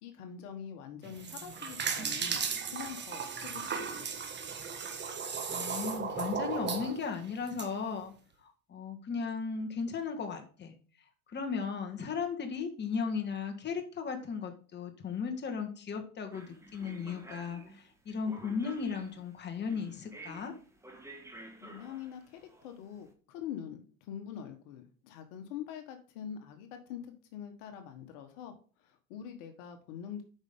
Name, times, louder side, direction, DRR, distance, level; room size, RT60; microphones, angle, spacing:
voice 1, 0.0-2.4 2.7-4.2 21.6-30.2, left 9 dB, 65° left, 6 dB, 1.4 m, -44 dB
sound 1, 1.0-7.7, right 6 dB, 25° right, 1.4 m, -36 dB
voice 2, 5.5-8.1 8.4-10.7 11.3-20.5, left 5 dB, 25° left, 4 dB, 1.6 m, -36 dB
sound 2, 16.3-23.0, right 2 dB, 5° right, 1.4 m, -51 dB
8.0 x 5.5 x 3.7 m, 0.39 s
hypercardioid pair, 100°, 41 cm